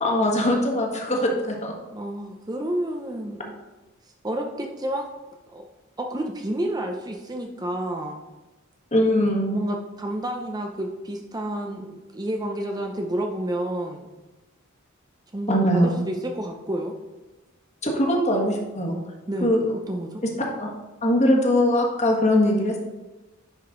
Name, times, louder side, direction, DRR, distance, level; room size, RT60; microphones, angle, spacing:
voice 1, 0.0-1.7 8.9-9.6 15.5-15.9 17.8-19.0 19.4-19.6 20.4-20.7 21.0-22.8, left 1 dB, 35° left, 0 dB, 1.5 m, -21 dB
voice 2, 1.9-3.6 4.2-5.1 5.5-5.6 6.0-8.2 9.5-14.1 15.3-16.9 19.3-19.5 19.9-20.2, right 1 dB, 20° right, 3 dB, 0.6 m, -30 dB
10.0 x 5.3 x 3.8 m, 1.1 s
head